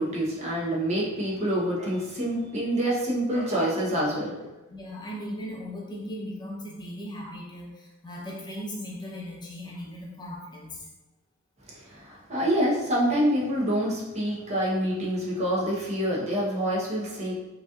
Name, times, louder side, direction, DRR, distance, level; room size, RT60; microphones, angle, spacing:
voice 1, 0.0-4.5 11.7-17.3, equal, 30° right, -5 dB, 1.1 m, -27 dB
voice 2, 4.7-10.9, equal, 20° left, -3 dB, 0.8 m, -38 dB
4.9 x 3.0 x 2.5 m, 1.1 s
head